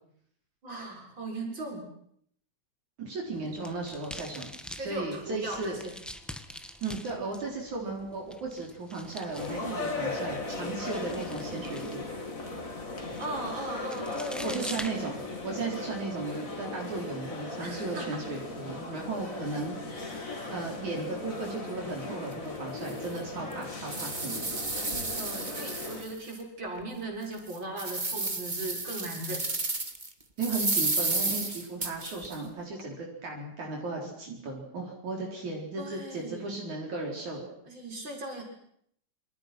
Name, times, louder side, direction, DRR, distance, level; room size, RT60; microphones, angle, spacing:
voice 1, 0.6-1.9 4.8-6.0 13.2-15.1 17.6-18.2 24.8-29.5 35.8-36.5 37.7-38.4, right 2 dB, 35° right, 0 dB, 7.3 m, -38 dB
voice 2, 3.0-4.5 4.8-5.8 6.8-12.1 14.4-19.8 20.5-24.5 30.4-37.5, right 3 dB, 65° right, -1 dB, 5.8 m, -35 dB
sound 1, 3.3-15.6, equal, ahead, 0.6 m, -46 dB
sound 2, 9.3-26.0, left 3 dB, 25° left, 3.3 m, -38 dB
sound 3, 22.3-22.4 22.9-23.0 23.5-26.3 26.8-26.9 27.4-30.1 30.4-32.3, right 2 dB, 20° right, 1.6 m, -32 dB
28.0 x 26.0 x 6.2 m, 0.69 s
omnidirectional pair, 3.6 m